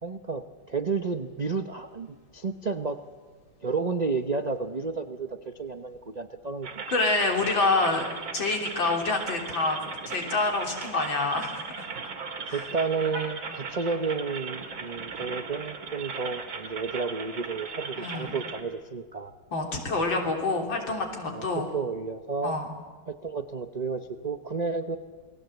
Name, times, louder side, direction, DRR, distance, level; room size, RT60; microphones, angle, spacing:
voice 1, 0.0-3.0 3.6-6.8 11.9-12.1 12.5-19.3 21.3-22.6 23.1-25.0, right 4 dB, 55° right, 7 dB, 0.4 m, -31 dB
sound 1, 6.6-18.6, right 5 dB, 75° right, 2.9 m, -38 dB
voice 2, 6.9-8.1 8.3-11.9 12.5-12.7 13.5-13.6 18.0-18.3 19.5-21.7 22.4-22.7, left 3 dB, 70° left, 1 dB, 4.2 m, -27 dB
28.5 x 20.0 x 8.0 m, 1.5 s
omnidirectional pair, 2.2 m